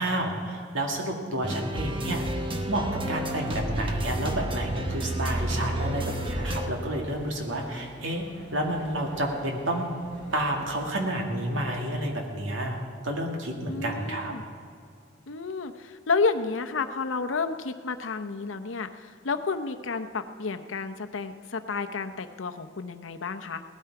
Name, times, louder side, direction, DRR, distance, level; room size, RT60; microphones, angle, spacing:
voice 1, 0.0-2.2 2.7-9.9 10.3-14.3, right 1 dB, 90° right, 1 dB, 2.2 m, -30 dB
sound 1, 1.4-6.7, right 1 dB, 30° right, 1.1 m, -31 dB
sound 2, 1.8-13.2, right 1 dB, 70° right, 2.7 m, -48 dB
voice 2, 13.7-14.4 15.3-23.6, left 4 dB, 90° left, 8 dB, 0.8 m, -31 dB
18.0 x 12.5 x 4.8 m, 2.3 s
head